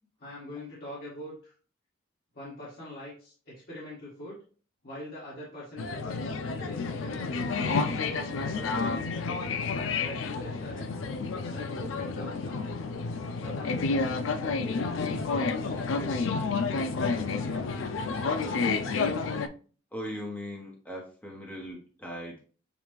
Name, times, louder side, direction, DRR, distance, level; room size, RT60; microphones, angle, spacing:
voice 1, 0.2-1.5 2.3-4.4 4.8-6.3 6.5-7.4 8.0-9.5 10.0-11.0 11.5-12.8 13.3-16.1 17.0-18.6, left 1 dB, 50° left, -8 dB, 1.7 m, -44 dB
sound 1, 5.8-19.5, left 4 dB, 85° left, 0.4 m, -30 dB
voice 2, 19.9-22.4, equal, 10° left, -2 dB, 0.9 m, -39 dB
7.0 x 2.3 x 3.1 m, 0.40 s
head